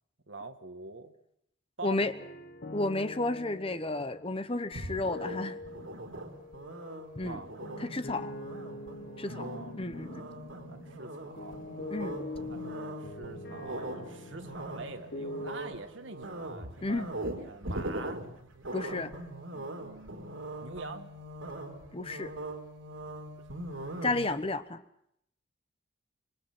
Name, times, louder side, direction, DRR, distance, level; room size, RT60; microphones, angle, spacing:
voice 1, 0.3-1.1 1.8-2.0 7.2-7.5 9.4-9.8 10.7-11.6 12.5-17.1 17.4-18.2 19.5-21.1 23.4-23.7, right 3 dB, 70° right, 6 dB, 1.9 m, -45 dB
voice 2, 1.8-2.1 2.7-5.6 7.2-7.4 7.8-8.3 9.2-9.5 9.8-10.3 11.9-12.2 16.8-17.1 18.7-19.1 21.9-22.3 24.0-24.8, left 2 dB, 30° left, 11 dB, 1.0 m, -32 dB
sound 1, 2.0-15.5, left 2 dB, 55° left, 1.2 m, -44 dB
sound 2, 4.7-24.6, right 1 dB, 90° right, 3.9 m, -41 dB
26.0 x 24.0 x 6.1 m, 0.75 s
head